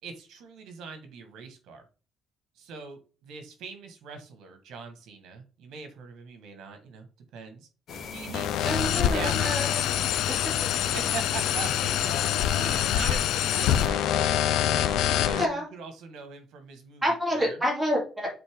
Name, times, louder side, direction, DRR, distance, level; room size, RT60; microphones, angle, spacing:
voice 1, 0.0-1.8 2.5-7.1 7.3-7.7 8.1-8.6 8.9-9.6 10.9-14.4 14.7-17.6, right 4 dB, 80° right, 7 dB, 1.8 m, -41 dB
sound 1, 7.9-13.9, left 5 dB, 50° left, 1.5 m, -40 dB
sound 2, 8.3-15.4, left 11 dB, 80° left, 0.5 m, -25 dB
voice 2, 8.6-9.8 10.3-10.4 10.6-10.9 15.3-15.6 17.0-18.3, equal, 10° right, -2 dB, 2.5 m, -28 dB
7.8 x 4.3 x 3.8 m, 0.36 s
cardioid pair, 175°, 0 cm